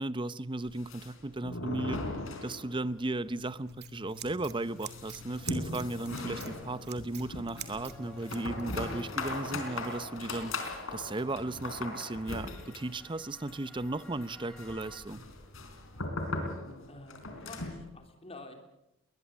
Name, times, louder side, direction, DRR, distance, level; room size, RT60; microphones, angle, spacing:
voice 1, 0.0-2.0 2.4-10.5 10.9-15.2, right 2 dB, 25° right, 16 dB, 0.7 m, -35 dB
sound 1, 0.6-3.0 3.3-3.4 3.7-3.8 4.2-17.9, left 2 dB, 75° left, 4.2 m, -39 dB
Scissors, 3.3-8.7, right 5 dB, 50° right, 2.3 m, -47 dB
sound 2, 7.7-15.0, equal, 5° left, 3.1 m, -56 dB
voice 2, 16.9-18.6, left 2 dB, 30° left, 5 dB, 3.5 m, -49 dB
21.5 x 21.0 x 7.5 m, 0.86 s
head